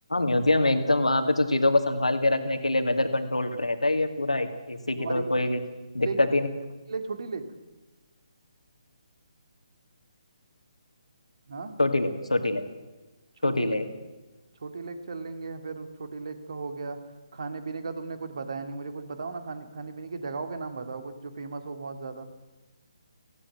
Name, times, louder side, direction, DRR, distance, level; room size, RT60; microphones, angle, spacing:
voice 1, 0.1-5.6 5.9-6.5 11.8-12.7 13.4-13.8, left 2 dB, 80° left, 7 dB, 2.3 m, -24 dB
voice 2, 4.9-5.2 6.0-6.2 6.9-7.4 11.5-11.7 13.4-13.8 14.6-17.0 17.3-22.3, right 4 dB, 55° right, 8 dB, 2.4 m, -36 dB
17.0 x 16.5 x 9.3 m, 1.1 s
figure-of-eight pair, 145°, 3 cm